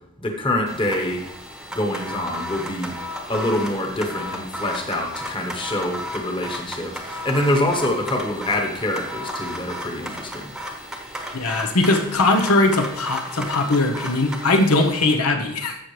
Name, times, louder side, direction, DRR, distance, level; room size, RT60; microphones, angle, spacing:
voice 1, 0.2-1.2 1.7-2.9 3.3-10.4, left 1 dB, 20° left, 2 dB, 1.2 m, -25 dB
sound 1, 0.7-15.1, equal, 5° right, 1.0 m, -34 dB
voice 2, 11.3-15.8, left 2 dB, 85° left, 4 dB, 1.0 m, -20 dB
14.5 x 6.0 x 3.3 m, 0.78 s
head